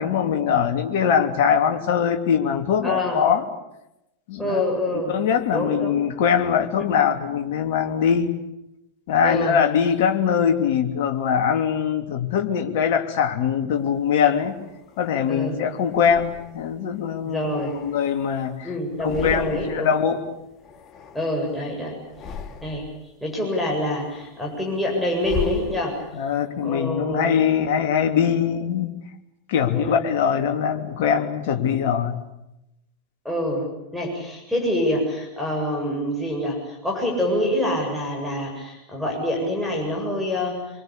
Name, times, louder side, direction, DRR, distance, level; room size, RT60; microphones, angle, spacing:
voice 1, 0.0-3.4 4.3-4.6 5.1-8.3 9.1-14.6 15.0-17.4 17.8-18.7 19.0-20.2 26.1-28.9 29.5-32.2, left 7 dB, 50° left, 4 dB, 3.0 m, -22 dB
voice 2, 2.8-3.2 4.4-5.2 5.5-6.0 9.2-9.6 15.3-15.6 17.2-17.7 18.6-19.9 21.1-22.0 22.6-22.9 23.2-26.0 26.6-27.3 29.7-30.0 33.2-33.7 33.9-40.6, left 1 dB, ahead, -2 dB, 7.7 m, -26 dB
sound 1, 14.0-15.2 15.9-16.8 17.3-18.5 18.9-20.0 20.2-21.6 22.0-23.1 23.5-26.3, left 5 dB, 30° left, 2.2 m, -38 dB
26.5 x 24.0 x 8.6 m, 0.90 s
figure-of-eight pair, 90°, 0 cm